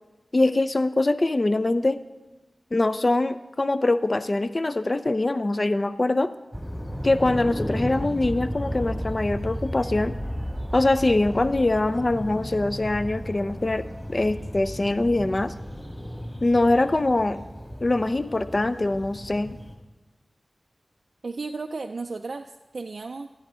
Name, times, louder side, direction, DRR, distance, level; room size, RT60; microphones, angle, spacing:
voice 1, 0.3-2.0 2.7-6.3 7.0-10.1 10.7-15.5 16.4-17.4 17.8-19.6, left 2 dB, 45° left, 13 dB, 0.5 m, -23 dB
sound 1, 6.5-19.7, equal, 10° left, 2.3 m, -34 dB
voice 2, 21.2-23.3, right 3 dB, 70° right, 5 dB, 0.3 m, -34 dB
11.5 x 10.0 x 3.8 m, 1.1 s
cardioid pair, 40°, 0 cm